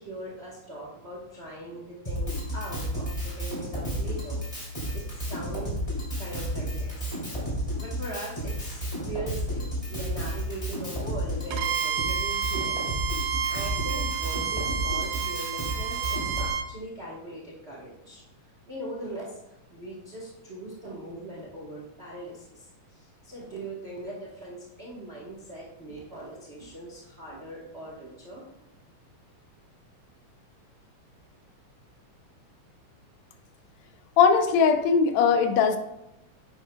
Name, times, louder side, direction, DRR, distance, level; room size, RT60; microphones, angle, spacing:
voice 1, 0.0-4.4 4.9-5.8 6.2-7.1 7.8-12.8 13.5-18.2 18.7-19.4 19.7-28.4, right 1 dB, 75° right, -4 dB, 0.5 m, -40 dB
Drum kit, 2.0-16.5, equal, 10° left, 2.6 m, -32 dB
Bowed string instrument, 11.5-16.7, right 7 dB, 90° right, 2.0 m, -30 dB
voice 2, 34.2-35.8, left 6 dB, 75° left, 7 dB, 1.8 m, -20 dB
9.8 x 8.9 x 2.3 m, 0.88 s
omnidirectional pair, 3.4 m